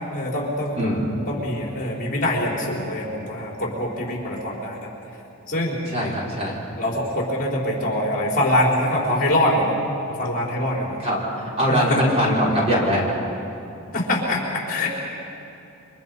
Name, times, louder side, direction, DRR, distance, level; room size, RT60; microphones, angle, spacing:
voice 1, 0.0-4.9 5.5-5.8 6.8-9.7 10.1-11.0 11.7-12.0 13.9-14.9, left 1 dB, 40° left, -2 dB, 4.5 m, -24 dB
voice 2, 0.8-1.1 5.9-6.6 11.0-13.0, equal, 30° right, -5 dB, 5.1 m, -22 dB
29.0 x 25.5 x 5.5 m, 2.9 s
head